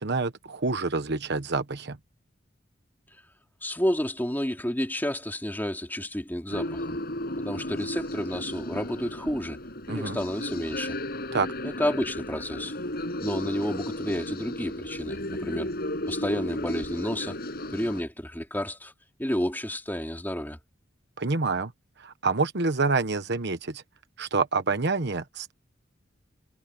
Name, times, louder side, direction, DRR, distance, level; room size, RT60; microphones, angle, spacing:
voice 1, 0.0-2.0 9.9-10.2 11.3-11.5 21.2-21.7 22.0-23.8 24.2-25.5, right 3 dB, 60° right, 1.2 m, -27 dB
voice 2, 3.6-7.0 7.4-9.6 9.9-11.0 11.6-12.7 13.2-15.7 16.1-17.4 17.7-18.9 19.2-20.6, equal, 10° left, 3.1 m, -30 dB
sound 1, 6.5-18.0, left 1 dB, 55° left, 7.8 m, -34 dB
head